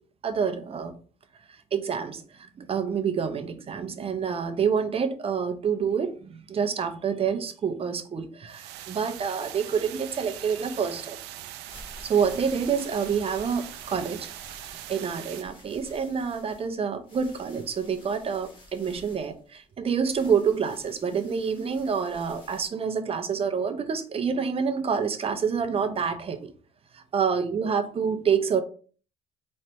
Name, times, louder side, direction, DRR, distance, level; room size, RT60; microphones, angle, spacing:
voice 1, 0.2-0.9 1.5-11.2 12.0-14.3 14.9-26.5 26.9-28.6, right 6 dB, 35° right, 8 dB, 0.7 m, -27 dB
sound 1, 8.5-15.4, right 13 dB, 90° right, 0.4 m, -41 dB
sound 2, 11.7-22.7, left 1 dB, 30° left, 1.8 m, -51 dB
4.2 x 3.2 x 2.8 m, 0.40 s
cardioid pair, 110°, 17 cm